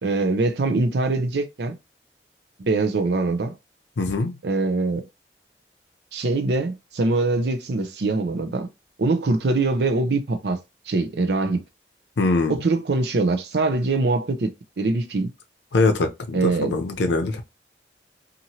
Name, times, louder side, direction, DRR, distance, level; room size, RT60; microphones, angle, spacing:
voice 1, 0.0-1.8 2.6-3.5 4.4-5.0 6.1-8.7 9.0-10.6 10.9-11.6 12.5-15.3 16.3-16.8, right 3 dB, 75° right, 0.5 m, -23 dB
voice 2, 4.0-4.3 12.2-12.6 15.7-17.4, left 3 dB, 90° left, 0.6 m, -22 dB
2.9 x 2.5 x 2.8 m
head